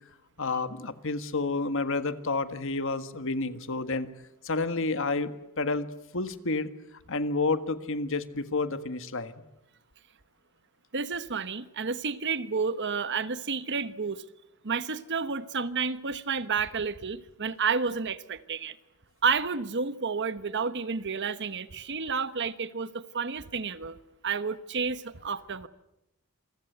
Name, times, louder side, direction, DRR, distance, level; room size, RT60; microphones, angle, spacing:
voice 1, 0.4-4.1 4.4-5.9 6.1-6.7 7.1-9.4, left 3 dB, 60° left, 1.6 m, -30 dB
voice 2, 10.9-14.2 14.6-18.8 19.2-24.0 24.2-25.7, right 5 dB, 55° right, 1.2 m, -30 dB
28.5 x 23.5 x 8.0 m
head